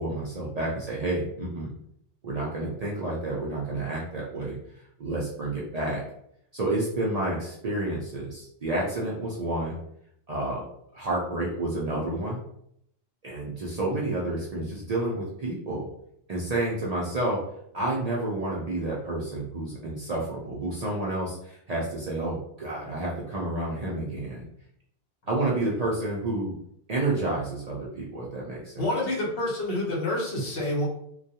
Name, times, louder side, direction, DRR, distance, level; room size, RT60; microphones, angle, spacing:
voice 1, 0.0-1.7 2.2-4.6 5.0-6.0 6.5-9.8 10.3-10.6 10.9-12.4 13.2-15.9 16.3-17.4 17.7-24.5 25.3-26.5 26.9-28.9, right 2 dB, 50° right, -4 dB, 0.5 m, -30 dB
voice 2, 28.8-30.9, left 1 dB, 65° left, -3 dB, 1.0 m, -28 dB
2.3 x 2.2 x 2.7 m, 0.71 s
omnidirectional pair, 1.1 m